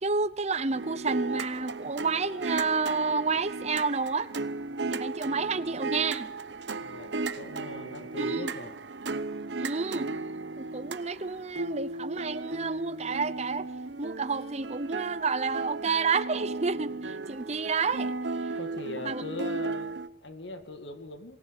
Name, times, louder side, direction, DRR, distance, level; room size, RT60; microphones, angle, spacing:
voice 1, 0.0-4.3 4.9-6.3 8.2-8.5 9.6-10.1 10.6-13.7 14.0-18.1 18.4-18.5 19.0-19.2, right 4 dB, 35° right, 13 dB, 0.8 m, -30 dB
sound 1, 0.7-20.1, right 3 dB, 75° right, 1.0 m, -35 dB
voice 2, 6.8-8.7 18.5-21.4, left 2 dB, 75° left, 8 dB, 2.1 m, -41 dB
23.5 x 17.5 x 8.2 m, 0.89 s
head